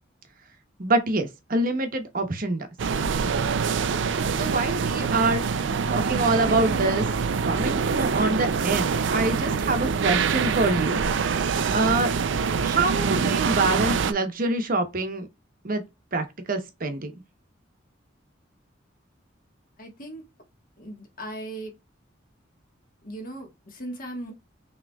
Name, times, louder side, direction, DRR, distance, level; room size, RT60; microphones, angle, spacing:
voice 1, 0.8-2.7 4.4-7.1 7.4-12.1 12.6-15.3 15.6-15.8 16.1-17.1, right 2 dB, 50° right, 1.0 m, -26 dB
sound 1, 2.8-14.1, right 5 dB, 75° right, 0.4 m, -25 dB
voice 2, 19.8-20.2 20.8-21.7 23.0-24.3, right 1 dB, 45° left, 1.5 m, -37 dB
6.1 x 3.1 x 2.3 m
head